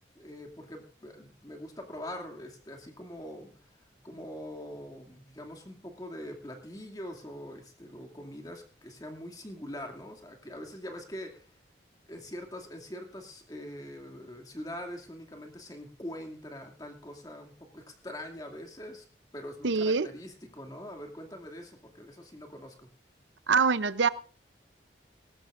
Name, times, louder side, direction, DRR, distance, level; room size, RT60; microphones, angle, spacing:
voice 1, 0.0-3.6 4.0-11.5 12.1-19.0 19.3-22.9, left 1 dB, 20° left, 2.5 m, -43 dB
voice 2, 19.6-20.1 23.5-24.1, right 5 dB, 85° right, 0.7 m, -24 dB
19.5 x 17.5 x 2.6 m
head